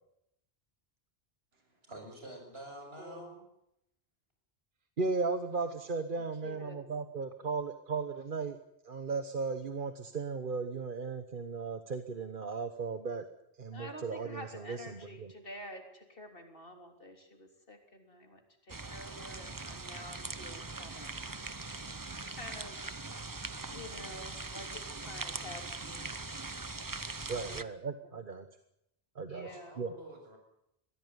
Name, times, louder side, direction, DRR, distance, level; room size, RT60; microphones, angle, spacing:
voice 1, 1.5-3.3 29.4-30.4, right 1 dB, 70° right, 3 dB, 6.7 m, -49 dB
voice 2, 3.0-3.5 6.4-6.8 13.7-21.1 21.6-21.9 22.3-22.8 23.7-26.1 27.4-27.7 29.3-29.8, left 1 dB, 60° left, 4 dB, 3.8 m, -49 dB
voice 3, 5.0-8.6 8.8-13.2 13.6-15.3 27.3-28.5 29.2-29.5 29.8-29.9, right 4 dB, 55° right, 9 dB, 1.3 m, -36 dB
sound 1, 18.7-27.6, right 3 dB, 20° right, 0.8 m, -41 dB
22.5 x 16.0 x 9.6 m, 0.81 s
omnidirectional pair, 1.1 m